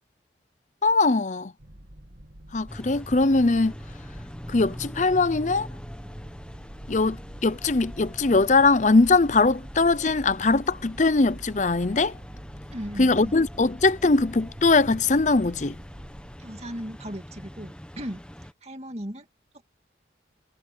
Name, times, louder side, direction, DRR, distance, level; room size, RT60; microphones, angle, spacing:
voice 1, 0.8-1.5 2.5-3.7 4.5-5.7 6.9-12.2 13.0-15.8, left 3 dB, 40° left, 0.6 m, -21 dB
sound 1, 1.6-16.4, equal, 55° right, 2.5 m, -46 dB
sound 2, 2.7-18.5, equal, 5° left, 1.3 m, -43 dB
voice 2, 12.7-13.3 16.4-18.2 18.6-19.3 19.5-19.6, equal, 35° right, 2.6 m, -36 dB
head